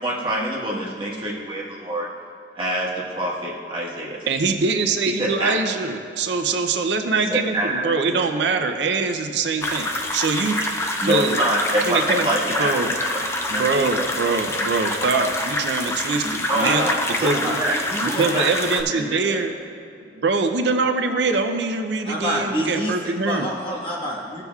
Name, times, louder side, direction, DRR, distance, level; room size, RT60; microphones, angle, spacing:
voice 1, 0.0-2.1 2.5-4.2 5.1-5.6 7.2-7.9 11.0-12.7 13.0-13.6 14.0-14.2 16.1-16.9 17.2-17.7 18.0-18.5 18.9-19.4, right 1 dB, 30° right, -6 dB, 1.5 m, -26 dB
voice 2, 4.3-10.8 11.0-11.4 11.9-12.3 12.6-13.0 13.5-16.9 17.2-17.6 18.0-19.5 20.2-23.5, right 4 dB, 85° right, 6 dB, 0.5 m, -23 dB
sound 1, 9.6-18.8, left 1 dB, 15° left, 0.4 m, -26 dB
voice 3, 16.5-17.0 17.3-17.6 17.9-18.4 22.0-22.9 23.2-24.4, equal, 30° left, -5 dB, 1.4 m, -27 dB
15.5 x 6.8 x 2.4 m, 2.4 s
head